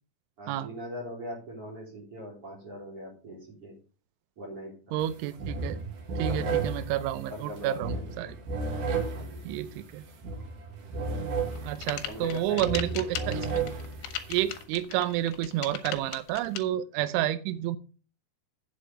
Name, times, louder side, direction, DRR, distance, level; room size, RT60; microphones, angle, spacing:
voice 1, 0.4-3.7 4.4-4.7 6.2-6.6 7.3-8.0 9.1-9.4 12.0-12.8, equal, 30° right, -3 dB, 3.9 m, -40 dB
voice 2, 4.9-5.8 6.2-8.4 9.4-10.1 11.6-13.6 14.3-17.8, right 13 dB, 80° right, 11 dB, 2.9 m, -30 dB
sound 1, 5.0-5.1 5.4-14.6, right 4 dB, 60° right, 2.2 m, -34 dB
sound 2, 11.5-16.6, left 11 dB, 75° left, 3.0 m, -37 dB
8.6 x 7.7 x 5.0 m, 0.37 s
omnidirectional pair, 5.8 m